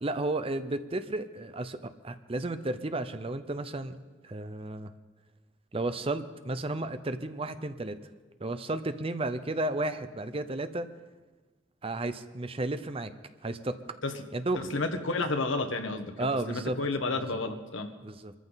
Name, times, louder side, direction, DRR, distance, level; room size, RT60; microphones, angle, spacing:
voice 1, 0.0-4.0 4.2-4.9 5.7-8.0 8.4-10.9 11.8-13.1 13.4-13.9 14.3-14.7 16.2-16.8 17.1-17.4 18.0-18.3, right 2 dB, 30° right, 10 dB, 0.7 m, -33 dB
voice 2, 14.5-17.9, left 3 dB, 70° left, 6 dB, 1.5 m, -31 dB
24.5 x 14.0 x 4.1 m, 1.3 s
head